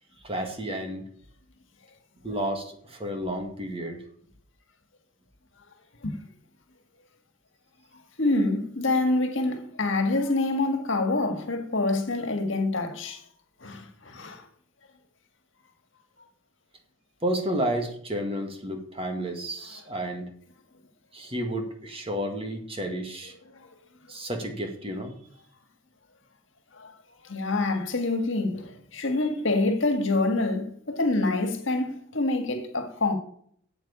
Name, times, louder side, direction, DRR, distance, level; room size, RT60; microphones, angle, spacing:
voice 1, 0.2-1.0 2.2-4.0 17.2-20.2 21.1-23.3 24.1-25.1, right 1 dB, 25° right, 2.1 m, -31 dB
voice 2, 8.2-13.2 13.6-14.4 23.2-23.7 26.7-26.9 27.2-33.1, left 2 dB, 60° left, 1.9 m, -26 dB
9.0 x 8.1 x 8.7 m
head